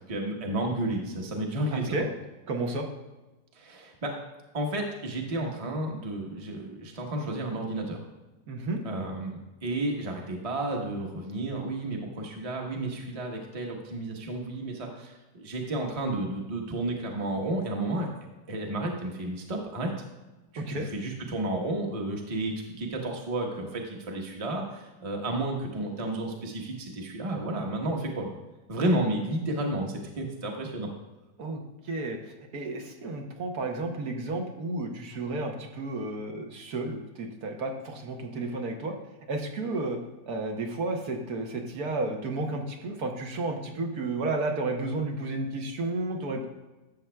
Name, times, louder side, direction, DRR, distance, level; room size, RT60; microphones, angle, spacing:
voice 1, 0.1-1.9 3.5-4.1 4.5-8.0 8.8-18.1 18.5-19.9 20.5-28.3 28.7-30.9, right 1 dB, 25° right, 1 dB, 0.9 m, -32 dB
voice 2, 1.7-2.2 2.5-2.9 8.5-8.8 20.6-20.9 31.4-38.9 39.3-40.0 40.3-46.4, right 2 dB, 70° right, 2 dB, 1.4 m, -32 dB
12.0 x 7.2 x 2.2 m, 1.1 s
omnidirectional pair, 1.8 m